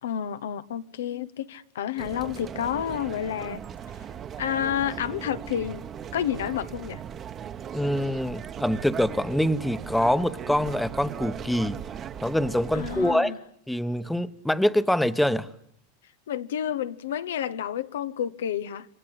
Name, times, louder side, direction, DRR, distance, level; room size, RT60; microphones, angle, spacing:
voice 1, 0.0-3.6 4.4-5.8 6.1-7.0 12.7-13.4 16.3-18.9, left 9 dB, 90° left, 1.2 m, -30 dB
sound 1, 2.0-13.1, right 8 dB, 25° right, 1.1 m, -38 dB
voice 2, 7.7-11.8 12.2-13.3 13.7-15.5, left 1 dB, 5° left, 1.0 m, -25 dB
28.0 x 24.5 x 8.3 m
supercardioid pair, 140°, 0 cm